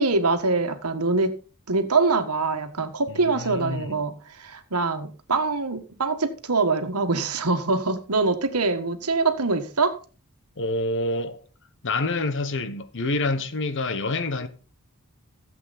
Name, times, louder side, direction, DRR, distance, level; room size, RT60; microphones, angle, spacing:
voice 1, 0.0-1.3 1.7-9.9, right 3 dB, 90° right, 1.6 m, -24 dB
voice 2, 3.1-3.9 10.6-11.4 11.8-14.5, left 2 dB, 60° left, 1.2 m, -27 dB
15.5 x 7.7 x 4.2 m
head